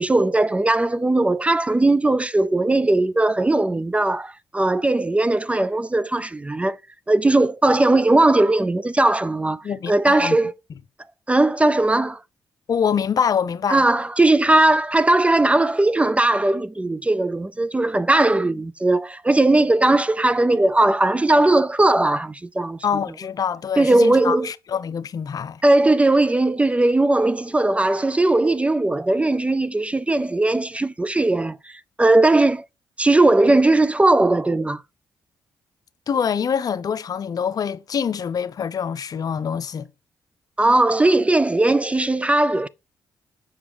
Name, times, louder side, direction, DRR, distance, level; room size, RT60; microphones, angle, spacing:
voice 1, 0.0-6.8 7.1-10.5 11.3-12.2 13.7-22.8 23.8-24.5 25.6-31.7 32.0-32.6 33.0-34.8 40.6-42.7, right 2 dB, 15° right, 0.3 m, -18 dB
voice 2, 9.6-10.4 12.7-13.8 22.8-25.6 36.1-39.9, left 7 dB, 55° left, 0.5 m, -25 dB
7.0 x 4.8 x 3.3 m
supercardioid pair, 55°, 8 cm